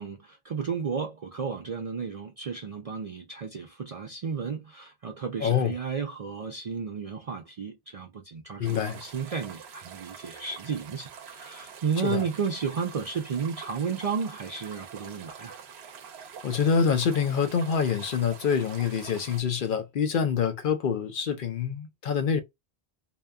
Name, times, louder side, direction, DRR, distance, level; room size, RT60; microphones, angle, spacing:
voice 1, 0.0-15.6, right 5 dB, 55° right, 0.4 m, -33 dB
voice 2, 5.4-5.7 8.6-9.0 12.0-12.2 16.4-22.4, left 6 dB, 60° left, 0.7 m, -26 dB
sound 1, 8.6-19.4, right 7 dB, 85° right, 0.9 m, -45 dB
2.8 x 2.2 x 2.3 m
omnidirectional pair, 1.1 m